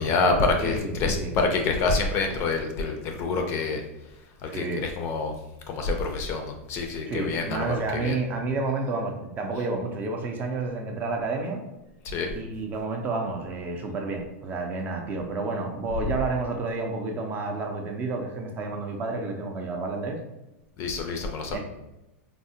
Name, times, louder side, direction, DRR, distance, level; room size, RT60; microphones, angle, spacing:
voice 1, 0.0-3.8 4.4-5.3 5.7-8.2 12.0-12.3 20.8-21.6, left 3 dB, 35° left, 4 dB, 0.4 m, -27 dB
voice 2, 0.6-1.3 4.5-4.8 7.1-11.6 12.3-20.2 21.5-21.6, right 3 dB, 25° right, 3 dB, 0.4 m, -30 dB
3.4 x 2.0 x 2.7 m, 0.95 s
supercardioid pair, 140°, 8 cm